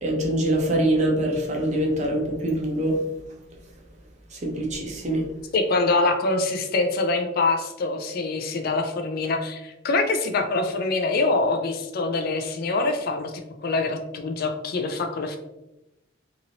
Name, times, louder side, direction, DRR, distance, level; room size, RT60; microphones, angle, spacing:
voice 1, 0.0-3.0 4.3-5.3, right 1 dB, 35° right, -1 dB, 0.7 m, -24 dB
voice 2, 5.5-15.4, left 3 dB, 50° left, 5 dB, 0.4 m, -25 dB
2.9 x 2.6 x 2.8 m, 0.94 s
head